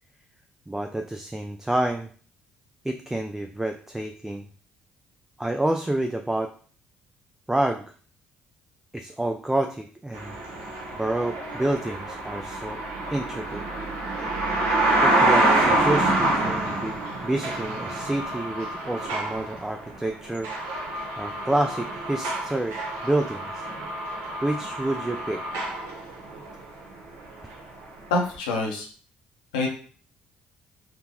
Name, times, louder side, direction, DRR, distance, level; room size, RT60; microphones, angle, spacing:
voice 1, 0.7-2.1 2.8-4.5 5.4-6.5 7.5-7.8 8.9-10.3 10.9-12.8 13.1-13.7 15.0-20.5 21.2-23.7 24.4-25.4, right 1 dB, 10° right, 5 dB, 0.4 m, -28 dB
sound 1, 10.1-26.8 27.1-27.6 28.3-28.4, right 2 dB, 75° right, 0.9 m, -27 dB
voice 2, 28.1-28.9 29.5-29.7, left 2 dB, 90° left, 0 dB, 0.7 m, -25 dB
3.6 x 2.2 x 3.0 m, 0.43 s
hypercardioid pair, 55°, 4 cm